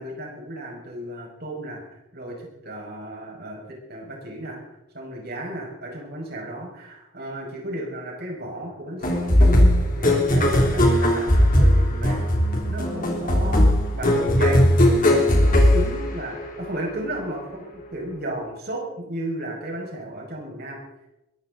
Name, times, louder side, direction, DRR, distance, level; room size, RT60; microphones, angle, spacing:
voice 1, 0.0-4.6 4.9-12.3 12.7-13.6 13.9-14.6 15.1-20.8, right 1 dB, 50° right, 0 dB, 6.2 m, -34 dB
sound 1, 9.0-16.6, left 1 dB, 45° left, 3.2 m, -18 dB
22.0 x 14.5 x 4.1 m, 0.90 s
head